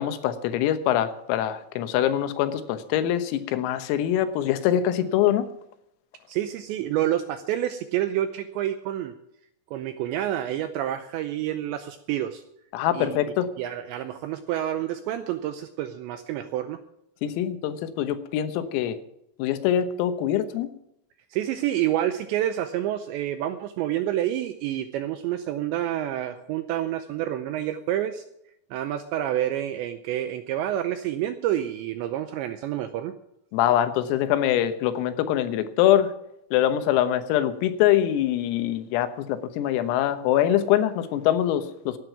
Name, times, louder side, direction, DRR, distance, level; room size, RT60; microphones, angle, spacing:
voice 1, 0.0-5.5 12.7-13.5 17.2-19.0 19.4-20.7 33.5-36.1 36.5-42.0, left 11 dB, 85° left, 10 dB, 3.9 m, -24 dB
voice 2, 6.3-9.1 9.7-12.4 12.9-13.2 13.6-16.8 21.3-28.2 28.7-33.1, right 12 dB, 85° right, 9 dB, 2.6 m, -28 dB
17.0 x 9.9 x 5.9 m, 0.79 s
omnidirectional pair, 6.0 m